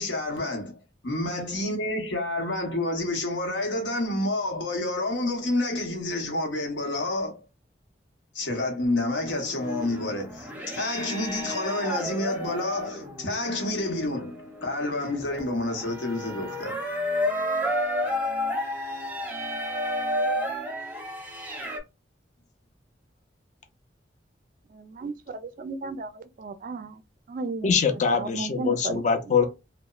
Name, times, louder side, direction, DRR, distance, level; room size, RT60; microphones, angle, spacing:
voice 1, 0.0-7.4 8.3-16.8, left 2 dB, 90° left, 0.9 m, -29 dB
sound 1, 9.3-21.8, equal, 10° right, 0.6 m, -31 dB
voice 2, 24.7-27.0 27.3-27.7 28.2-29.0, right 3 dB, 50° right, 0.3 m, -34 dB
voice 3, 27.6-29.5, left 6 dB, 40° left, 0.4 m, -23 dB
2.9 x 2.0 x 2.3 m
head